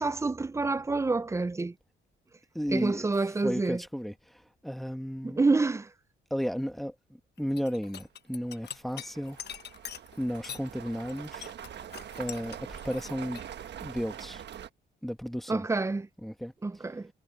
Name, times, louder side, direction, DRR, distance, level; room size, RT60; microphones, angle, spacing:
voice 1, 0.0-1.7 2.7-3.8 5.2-5.9 15.5-16.1 16.6-17.1, right 3 dB, 15° right, 0.5 m, -28 dB
voice 2, 2.5-3.1 3.4-5.4 6.3-7.0 7.4-9.4 10.2-11.5 12.2-13.4 13.8-14.4 15.0-15.7 16.2-16.5, equal, ahead, 1.8 m, -34 dB
sound 1, 7.4-10.7 11.0-13.5, left 9 dB, 55° left, 1.2 m, -44 dB
sound 2, 8.0-8.1 8.6-14.7, right 9 dB, 60° right, 1.3 m, -44 dB
cardioid pair, 90°, 20 cm